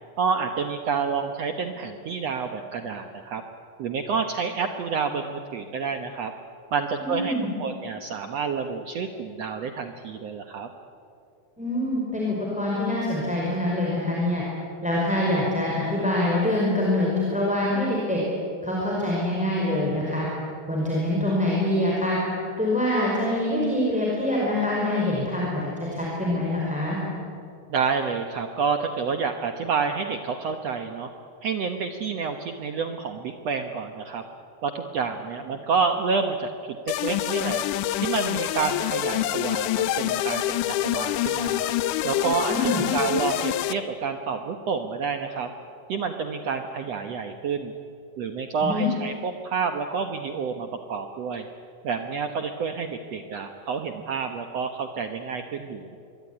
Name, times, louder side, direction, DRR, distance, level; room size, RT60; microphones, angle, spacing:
voice 1, 0.2-3.4 3.8-6.3 6.7-10.7 27.7-31.1 31.4-34.2 34.6-36.5 36.9-37.6 38.0-41.6 42.0-45.5 45.9-47.7 48.2-51.4 51.8-56.0, right 5 dB, 75° right, 6 dB, 1.4 m, -29 dB
voice 2, 7.0-7.5 11.6-14.4 14.8-18.2 18.6-20.3 20.7-22.2 22.6-25.7 25.9-27.0 42.5-42.8 48.6-48.9, left 1 dB, ahead, -4 dB, 4.9 m, -25 dB
sound 1, 36.9-43.7, left 13 dB, 80° left, 1.8 m, -26 dB
25.5 x 23.0 x 9.8 m, 2.6 s
omnidirectional pair, 4.6 m